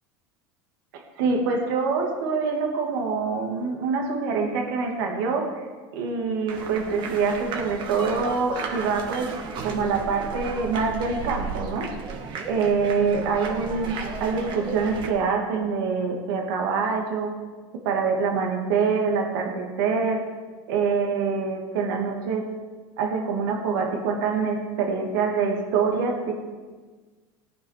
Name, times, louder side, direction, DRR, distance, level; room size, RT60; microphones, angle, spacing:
voice 1, 0.9-5.7 5.9-9.3 9.6-11.9 12.5-17.3 17.8-20.2 20.7-22.4 23.0-26.3, right 5 dB, 80° right, 1 dB, 2.6 m, -25 dB
sound 1, 6.5-15.1, right 4 dB, 45° right, 2.1 m, -34 dB
18.0 x 9.3 x 5.0 m, 1.4 s
supercardioid pair, 120°, 11 cm